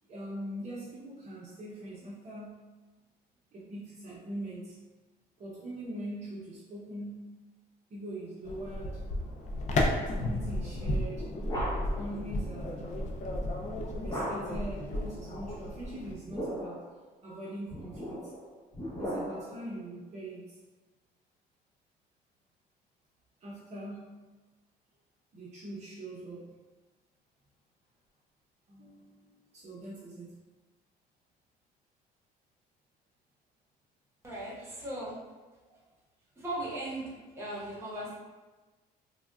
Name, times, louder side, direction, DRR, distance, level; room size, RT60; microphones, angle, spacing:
voice 1, 0.0-2.6 3.5-4.8 5.4-7.4 7.9-9.0 9.9-11.3 12.0-12.9 14.0-16.9 17.2-18.3 18.8-20.6 23.4-24.2 25.3-26.6 28.7-30.4 34.6-34.7 35.7-35.8, right 1 dB, 40° right, -7 dB, 0.7 m, -42 dB
sound 1, 8.4-16.1, left 1 dB, 45° left, 0.5 m, -33 dB
sound 2, 11.4-12.1 14.1-14.7 16.1-16.9 17.7-19.6, equal, 20° left, 1.0 m, -37 dB
voice 2, 34.2-35.2 36.3-38.1, right 1 dB, 15° right, -6 dB, 1.0 m, -38 dB
3.5 x 2.2 x 2.3 m, 1.3 s
cardioid pair, 110°, 17 cm